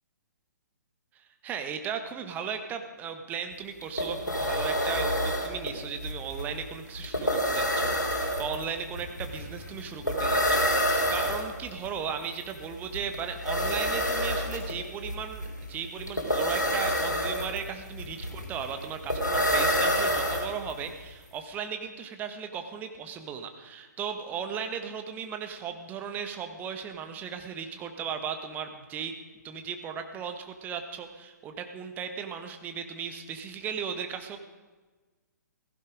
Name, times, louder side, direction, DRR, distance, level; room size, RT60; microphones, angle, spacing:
voice 1, 1.1-29.1 29.4-34.4, right 7 dB, 15° right, 7 dB, 1.2 m, -36 dB
sound 1, 3.5-3.6 3.8-20.9, equal, 80° left, 3.6 m, -28 dB
15.5 x 15.5 x 5.1 m, 1.3 s
figure-of-eight pair, 125°, 10 cm